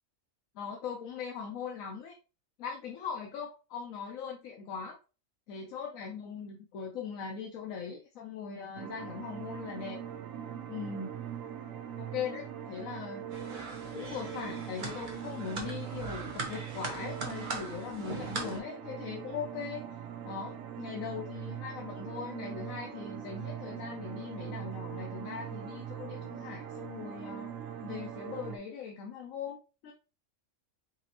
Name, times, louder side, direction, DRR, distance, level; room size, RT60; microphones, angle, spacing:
voice 1, 0.6-2.1 2.6-5.0 5.5-10.0 10.7-11.2 12.0-13.3 13.9-19.8 20.2-27.5 27.8-29.9, left 6 dB, 90° left, 1 dB, 1.2 m, -40 dB
sound 1, 8.8-28.6, right 9 dB, 85° right, 1.0 m, -42 dB
sound 2, 13.3-18.6, right 3 dB, 40° right, 1.0 m, -40 dB
4.2 x 4.0 x 2.8 m, 0.32 s
omnidirectional pair, 1.4 m